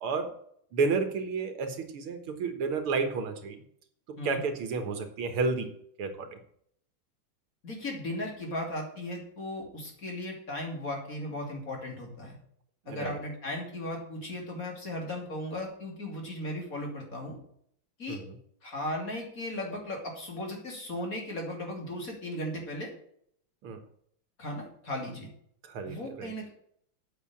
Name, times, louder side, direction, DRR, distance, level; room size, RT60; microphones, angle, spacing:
voice 1, 0.0-0.4 0.7-3.6 4.2-5.7 6.0-6.4 12.9-13.2 18.1-18.3 23.6-23.8 25.6-26.3, right 4 dB, 80° right, 7 dB, 2.4 m, -31 dB
voice 2, 7.6-12.4 12.9-17.4 18.0-18.2 18.6-22.9 24.4-25.3 25.8-26.5, left 1 dB, 40° left, 0 dB, 3.2 m, -36 dB
8.6 x 6.7 x 8.6 m, 0.66 s
omnidirectional pair, 2.3 m